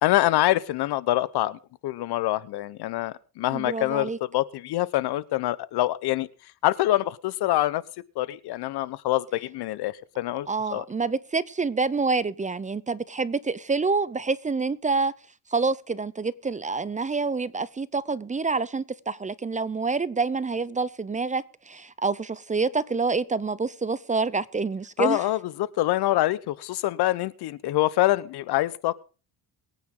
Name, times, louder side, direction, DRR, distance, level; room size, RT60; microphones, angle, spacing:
voice 1, 0.0-6.3 6.6-7.8 8.2-10.8 25.0-29.0, left 15 dB, 75° left, 1.0 m, -25 dB
voice 2, 3.5-4.2 10.5-15.1 15.5-25.3, right 4 dB, 20° right, 0.7 m, -27 dB
23.0 x 9.3 x 3.9 m
cardioid pair, 115°, 39 cm